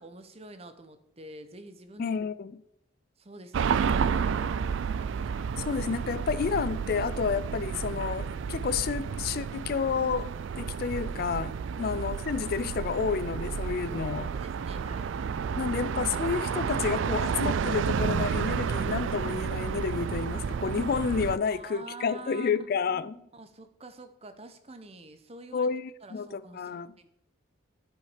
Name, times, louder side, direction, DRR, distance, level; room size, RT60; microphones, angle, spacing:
voice 1, 0.0-2.2 3.2-4.8 11.7-11.9 14.3-15.1 21.5-22.5 22.9-25.7 26.0-27.1, right 2 dB, 30° right, 0.8 m, -47 dB
voice 2, 2.0-2.5 5.3-10.3 10.6-14.3 15.6-23.2 25.5-26.9, left 5 dB, 45° left, 0.3 m, -30 dB
sound 1, 3.5-21.4, right 6 dB, 65° right, 0.3 m, -31 dB
12.5 x 5.6 x 5.0 m
head